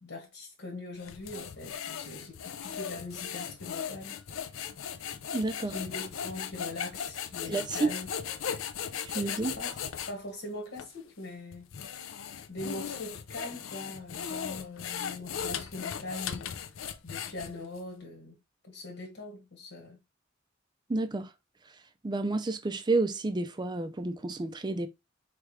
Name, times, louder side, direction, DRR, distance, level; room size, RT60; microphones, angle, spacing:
voice 1, 0.0-4.2 5.6-8.1 9.5-9.8 10.1-11.7 12.5-16.6 17.0-18.4 18.6-20.0, left 2 dB, 70° left, 1.5 m, -41 dB
sound 1, 1.0-10.1 10.8-10.9 11.5-17.8, left 8 dB, 85° left, 0.5 m, -38 dB
voice 2, 5.3-5.8 7.5-7.9 9.1-9.6 20.9-21.3 22.0-24.9, right 3 dB, 20° right, 0.4 m, -30 dB
4.8 x 3.3 x 3.1 m
head